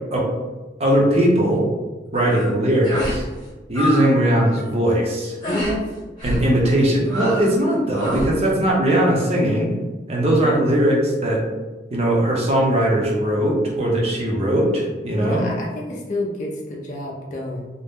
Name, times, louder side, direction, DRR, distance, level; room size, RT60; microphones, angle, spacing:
voice 1, 0.8-1.6 2.1-3.3 3.7-5.3 6.2-9.7 10.1-11.4 11.9-15.4, right 1 dB, 35° right, -2 dB, 0.6 m, -19 dB
sound 1, 2.1-2.5 2.8-3.2 3.5-4.1 4.4-4.7 5.4-5.8 6.2-6.5 7.1-7.6 7.9-8.3, equal, 25° left, 1.0 m, -27 dB
voice 2, 5.4-5.8 15.2-17.7, left 1 dB, 40° left, -2 dB, 0.4 m, -28 dB
2.6 x 2.1 x 3.4 m, 1.2 s
head